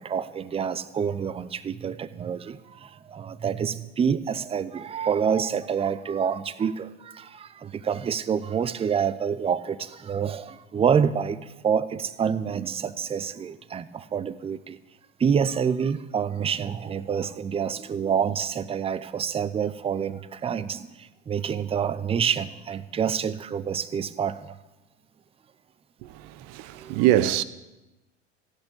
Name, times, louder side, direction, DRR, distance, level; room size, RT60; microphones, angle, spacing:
voice 1, 0.0-14.8 15.2-24.6 26.8-27.0, right 7 dB, 15° right, 0.6 m, -27 dB
voice 2, 26.0-27.4, right 13 dB, 45° right, 0.8 m, -24 dB
15.0 x 8.3 x 8.6 m
figure-of-eight pair, 80°, 37 cm